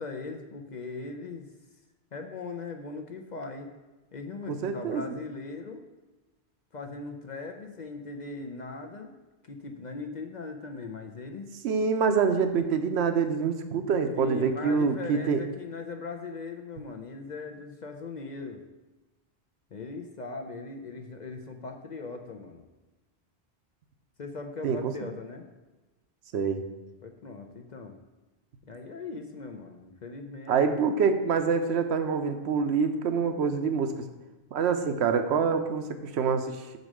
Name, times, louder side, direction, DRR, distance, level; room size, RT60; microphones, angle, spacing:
voice 1, 0.0-1.5 2.1-3.7 4.1-5.9 6.7-9.1 9.4-11.5 14.1-18.6 19.7-22.6 24.2-25.5 27.0-28.0 28.6-30.6, left 3 dB, 50° left, 5 dB, 0.7 m, -39 dB
voice 2, 4.5-5.0 11.6-15.4 24.6-24.9 26.3-26.6 30.5-34.0 34.5-36.8, right 5 dB, 80° right, 8 dB, 1.0 m, -26 dB
6.4 x 5.3 x 6.2 m, 1.1 s
omnidirectional pair, 1.1 m